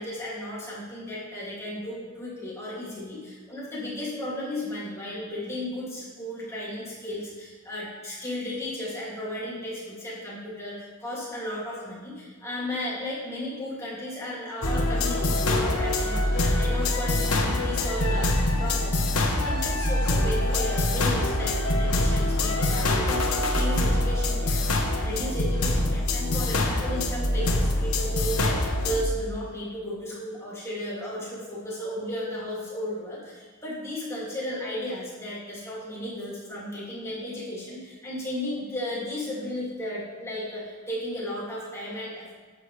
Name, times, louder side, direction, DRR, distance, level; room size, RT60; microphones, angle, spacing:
voice 1, 0.0-24.6 25.0-42.3, left 1 dB, 10° left, -7 dB, 2.4 m, -34 dB
sound 1, 14.6-29.1, left 1 dB, 80° left, 1.1 m, -24 dB
11.0 x 8.0 x 3.3 m, 1.4 s
head